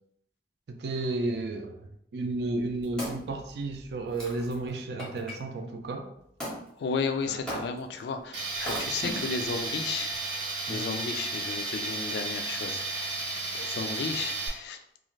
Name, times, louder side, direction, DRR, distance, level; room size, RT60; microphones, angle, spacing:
voice 1, 0.7-6.1 7.3-7.4 10.7-10.9, right 2 dB, 65° right, 4 dB, 0.4 m, -33 dB
Wood, 2.4-5.4 6.4-6.6 7.5-8.0 8.6-9.6 10.2-10.3, equal, 5° left, 0.6 m, -38 dB
voice 2, 6.8-10.2 10.7-14.8, left 5 dB, 65° left, 6 dB, 0.3 m, -34 dB
Tools, 8.3-14.5, right 3 dB, 90° right, 0.8 m, -33 dB
2.4 x 2.4 x 3.1 m, 0.74 s
head